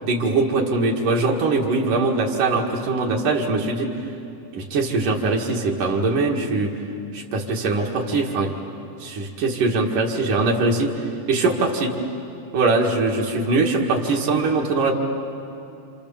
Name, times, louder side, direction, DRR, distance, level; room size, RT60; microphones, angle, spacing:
voice 1, 0.0-3.9 4.5-6.7 7.1-8.5 9.0-11.9 12.5-14.9, right 3 dB, 90° right, -1 dB, 3.8 m, -22 dB
29.5 x 28.0 x 7.2 m, 2.7 s
omnidirectional pair, 3.5 m